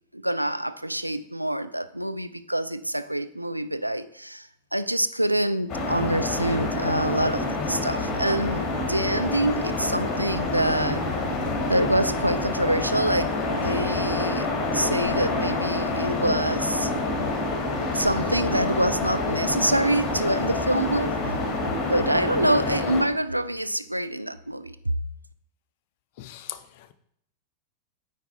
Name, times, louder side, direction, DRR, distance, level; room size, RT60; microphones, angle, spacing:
voice 1, 0.1-11.0 11.7-14.5 14.7-16.9 17.9-21.1 21.8-24.8, right 1 dB, 90° right, 0.4 m, -26 dB
sound 1, 5.7-23.0, left 2 dB, 25° left, 1.9 m, -27 dB
voice 2, 26.2-26.9, left 13 dB, 50° left, 0.5 m, -40 dB
9.4 x 4.1 x 4.6 m
figure-of-eight pair, 90°, 0 cm